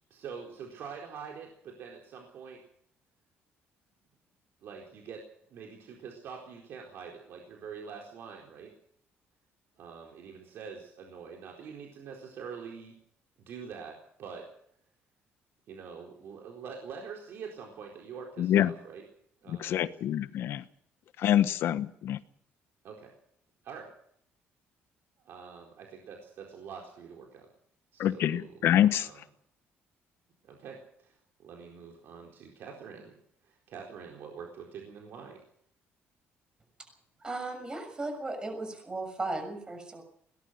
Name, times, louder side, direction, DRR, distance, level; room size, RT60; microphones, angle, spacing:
voice 1, 0.1-2.6 4.6-5.2 5.5-8.7 9.8-12.9 13.4-14.5 15.7-19.0 19.4-19.9 21.4-21.5 22.8-23.1 23.6-23.9 25.2-27.5 27.9-29.2 30.4-33.1 33.4-35.4, right 6 dB, 60° right, 0 dB, 4.3 m, -45 dB
voice 2, 18.4-18.7 19.5-20.6 21.2-22.2 28.0-29.1, left 11 dB, 65° left, 12 dB, 1.3 m, -26 dB
voice 3, 37.2-40.0, right 2 dB, 20° right, 5 dB, 6.7 m, -36 dB
21.5 x 19.5 x 6.7 m, 0.68 s
cardioid pair, 155°, 4 cm